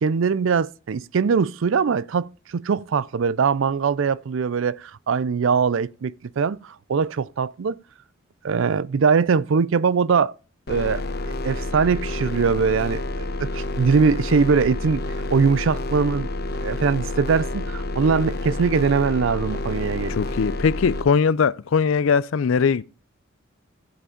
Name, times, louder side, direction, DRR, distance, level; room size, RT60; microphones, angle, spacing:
voice 1, 0.0-7.8 8.4-10.3 10.7-11.0 11.4-15.0 15.3-16.3 16.6-20.2, right 5 dB, 70° right, 0.4 m, -22 dB
sound 1, 10.7-21.0, left 2 dB, 50° left, 1.1 m, -29 dB
voice 2, 20.1-22.8, left 6 dB, 75° left, 0.4 m, -20 dB
15.0 x 5.0 x 5.0 m
head